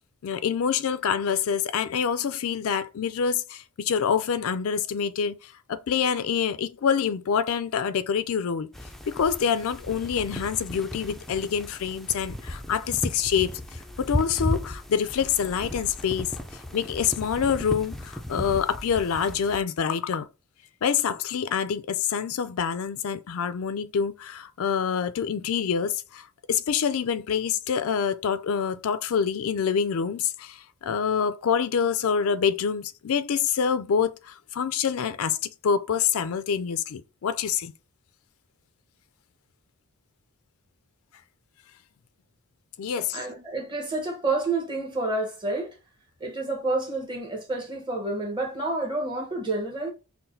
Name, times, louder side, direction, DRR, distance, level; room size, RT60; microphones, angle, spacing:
voice 1, 0.2-8.7 9.1-13.6 14.0-20.3 20.8-35.4 35.6-37.7 42.8-43.2, left 7 dB, 65° left, 0.4 m, -26 dB
sound 1, 8.7-19.6, left 1 dB, ahead, 0.4 m, -35 dB
voice 2, 43.0-45.8 46.2-49.9, right 2 dB, 20° right, 1.0 m, -29 dB
5.6 x 2.3 x 2.6 m
head